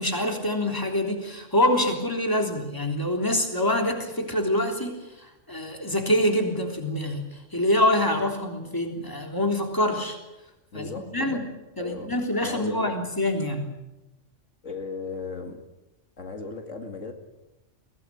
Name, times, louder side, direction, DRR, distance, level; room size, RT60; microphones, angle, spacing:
voice 1, 0.0-10.2 10.7-11.5 11.8-13.7, left 1 dB, 15° left, 3 dB, 3.5 m, -25 dB
voice 2, 10.7-11.4 11.8-13.0 14.6-15.6 16.2-17.1, left 4 dB, 80° left, 5 dB, 2.7 m, -36 dB
22.5 x 17.0 x 9.9 m, 1.0 s
omnidirectional pair, 1.3 m